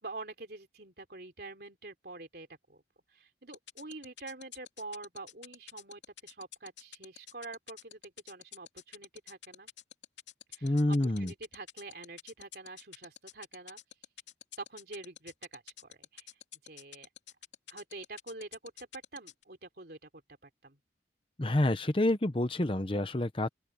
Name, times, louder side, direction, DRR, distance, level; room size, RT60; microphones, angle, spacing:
voice 1, 0.0-2.8 3.1-9.7 10.5-13.8 14.6-16.3 16.6-17.1 17.7-20.8, right 3 dB, 60° right, 3.4 m, -46 dB
sound 1, 3.5-19.4, left 11 dB, 85° left, 2.8 m, -48 dB
voice 2, 10.6-11.3 21.4-23.5, left 1 dB, 30° left, 0.9 m, -28 dB
open air
head